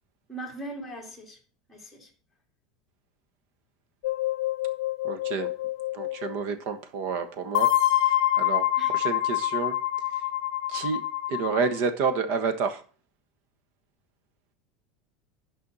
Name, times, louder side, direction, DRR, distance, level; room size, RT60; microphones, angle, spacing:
voice 1, 0.3-1.4 1.7-2.1 8.8-8.9, right 1 dB, ahead, -1 dB, 2.5 m, -39 dB
sound 1, 4.0-6.3 7.5-11.8, left 13 dB, 85° left, 0.6 m, -26 dB
voice 2, 5.0-5.5 5.9-7.7 8.0-8.6 8.9-9.8 10.7-11.0 11.3-12.8, right 5 dB, 55° right, 9 dB, 1.3 m, -29 dB
12.0 x 5.6 x 4.1 m, 0.40 s
supercardioid pair, 160°, 3 cm